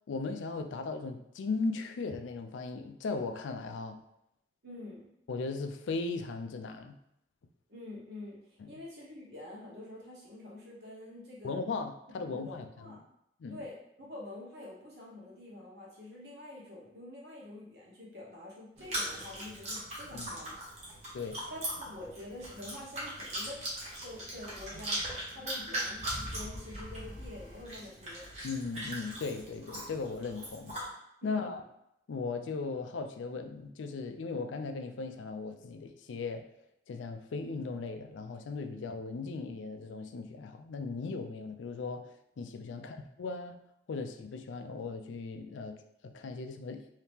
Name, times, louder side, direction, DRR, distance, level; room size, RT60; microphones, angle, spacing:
voice 1, 0.1-4.0 5.3-7.0 11.4-12.9 13.4-13.6 20.1-20.3 21.1-21.4 28.4-30.8 31.2-31.6 32.1-36.4 36.9-42.1 42.4-43.6 43.9-45.8 46.0-46.8, left 4 dB, 90° left, 7 dB, 0.4 m, -37 dB
voice 2, 4.6-5.1 7.7-11.5 12.3-13.0 13.5-20.6 21.5-23.6 24.0-28.3 31.2-31.5 42.7-42.9, left 1 dB, 65° right, -5 dB, 1.1 m, -47 dB
Chewing mastication, 18.8-30.9, right 1 dB, 35° right, 1.1 m, -40 dB
sound 1, 20.2-20.6 21.2-21.3 21.6-21.7 22.6-23.0 23.2-24.4 24.7-25.2 25.9-27.9, equal, 15° left, 0.6 m, -46 dB
2.8 x 2.8 x 3.5 m, 0.80 s
head